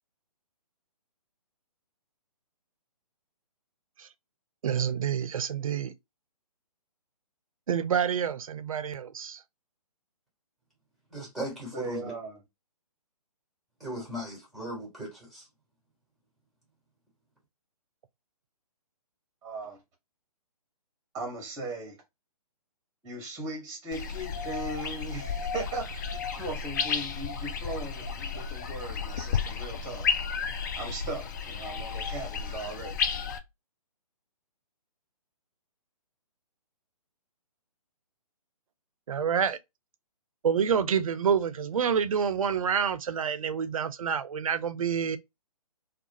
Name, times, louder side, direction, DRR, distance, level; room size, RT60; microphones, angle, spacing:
voice 1, 4.6-5.9 7.7-9.4 39.1-39.6 40.4-45.2, right 7 dB, 60° right, 0.4 m, -28 dB
voice 2, 11.1-12.1 13.8-15.4, equal, ahead, 1.3 m, -37 dB
voice 3, 11.7-12.4 19.4-19.8 21.1-22.0 23.0-30.1 30.8-33.0, right 2 dB, 15° right, 1.1 m, -38 dB
sound 1, 23.9-33.4, left 6 dB, 30° left, 0.4 m, -33 dB
2.3 x 2.3 x 2.6 m
figure-of-eight pair, 135°, 20 cm